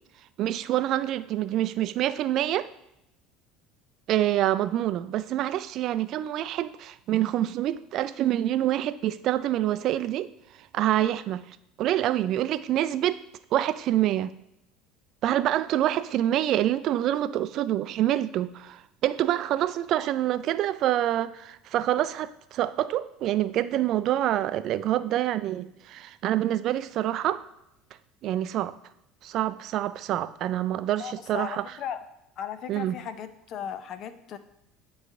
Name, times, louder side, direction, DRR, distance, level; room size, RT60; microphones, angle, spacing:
voice 1, 0.4-2.7 4.1-10.3 10.6-11.4 11.8-13.2 13.5-14.3 15.2-27.4 28.2-28.7 29.2-31.6 32.7-33.0, right 12 dB, 55° right, 15 dB, 0.3 m, -26 dB
voice 2, 31.0-32.1 32.4-34.4, left 9 dB, 55° left, 11 dB, 0.6 m, -36 dB
9.4 x 3.2 x 3.7 m, 0.83 s
hypercardioid pair, 85°, 0 cm